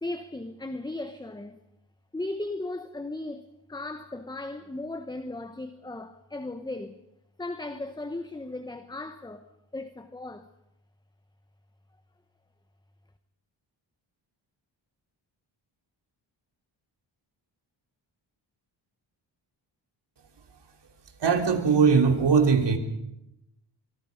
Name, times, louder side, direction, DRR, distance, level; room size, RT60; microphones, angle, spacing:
voice 1, 0.0-1.6 2.1-7.0 7.4-9.5 9.7-10.5, left 2 dB, 10° left, 1.0 m, -36 dB
voice 2, 21.2-22.8, right 5 dB, 60° right, 3.2 m, -20 dB
25.0 x 24.0 x 5.3 m
wide cardioid pair, 115°, 47 cm